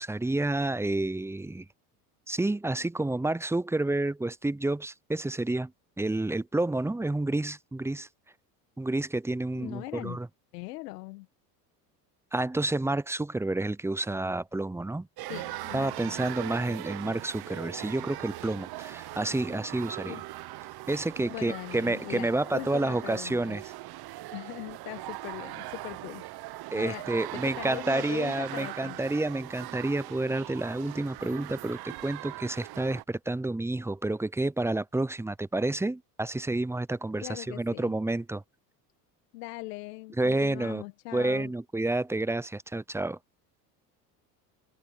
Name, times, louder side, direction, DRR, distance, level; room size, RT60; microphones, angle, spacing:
voice 1, 0.0-1.7 2.3-5.7 6.0-8.1 8.8-10.3 12.3-15.1 15.7-20.2 20.9-23.6 26.7-38.4 40.2-40.8 41.1-43.2, right 2 dB, 5° right, 0.7 m, -29 dB
voice 2, 9.5-10.2 10.5-11.3 15.3-15.9 16.7-16.8 20.0-20.2 21.3-23.6 24.3-26.5 26.8-27.1 27.3-29.0 37.2-37.9 39.3-41.5, left 21 dB, 75° left, 1.8 m, -40 dB
sound 1, 15.2-33.0, right 17 dB, 50° right, 1.3 m, -41 dB
sound 2, 15.3-24.9, right 28 dB, 70° right, 3.7 m, -52 dB
hypercardioid pair, 75°, 48 cm